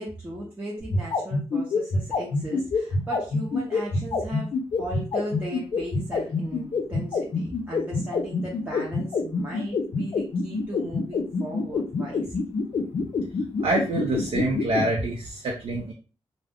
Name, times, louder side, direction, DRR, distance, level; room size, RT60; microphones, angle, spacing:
voice 1, 0.0-4.5 4.8-12.6, right 1 dB, 20° right, -5 dB, 0.6 m, -37 dB
sound 1, 0.8-14.8, left 4 dB, 55° left, 0.5 m, -25 dB
voice 2, 13.6-15.9, right 2 dB, 65° right, -1 dB, 0.5 m, -26 dB
2.3 x 2.0 x 3.4 m, 0.35 s
wide cardioid pair, 140°, 10 cm